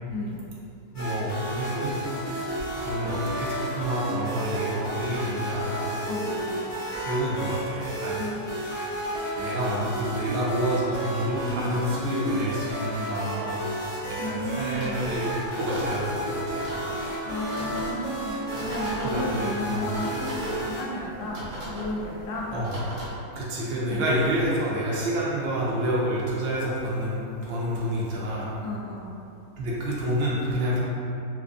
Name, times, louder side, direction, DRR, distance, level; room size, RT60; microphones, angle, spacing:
sound 1, 0.9-20.8, equal, 45° left, 0.9 m, -32 dB
voice 1, 0.9-1.9 2.3-5.9 7.0-8.2 9.3-13.6 14.1-16.7 19.0-19.9 22.5-22.7 23.3-28.5 29.6-30.8, right 1 dB, 75° right, -6 dB, 1.3 m, -28 dB
voice 2, 6.0-6.5 8.1-8.3 14.2-15.0 17.2-22.6 23.1-23.3 23.9-24.1 28.6-29.1, left 1 dB, 80° left, -3 dB, 1.4 m, -33 dB
sound 2, 14.7-23.1, right 1 dB, 55° right, 0.9 m, -39 dB
4.5 x 2.2 x 2.4 m, 2.7 s
omnidirectional pair, 2.2 m